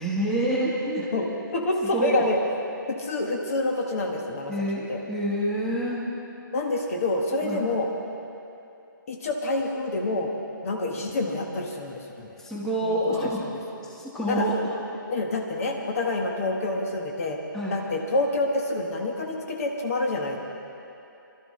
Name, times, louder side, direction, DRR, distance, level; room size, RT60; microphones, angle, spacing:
voice 1, 0.0-1.1 1.9-2.3 4.5-6.0 7.4-7.6 12.4-13.4 13.8-14.7 17.5-17.8, right 1 dB, 5° left, -5 dB, 1.4 m, -27 dB
voice 2, 1.1-2.4 2.9-4.5 4.9-5.0 6.5-7.9 9.1-10.3 10.6-12.3 12.8-13.3 14.3-14.5 15.1-17.4 17.7-20.4, left 2 dB, 40° left, 1 dB, 1.3 m, -27 dB
24.0 x 12.5 x 3.2 m, 2.8 s
hypercardioid pair, 155°, 11 cm